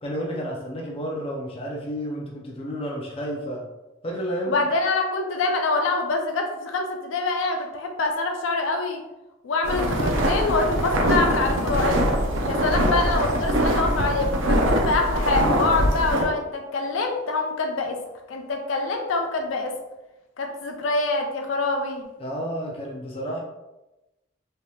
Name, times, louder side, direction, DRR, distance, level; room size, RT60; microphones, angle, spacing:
voice 1, 0.0-3.6 4.0-4.7 22.2-23.4, equal, 30° left, -1 dB, 0.5 m, -31 dB
voice 2, 4.5-9.0 9.4-12.0 12.5-18.0 18.3-19.7 20.4-22.1, left 3 dB, 85° left, 3 dB, 0.4 m, -25 dB
sound 1, 9.6-16.3, equal, 80° right, 0.5 m, -22 dB
3.3 x 2.7 x 2.3 m, 0.98 s
head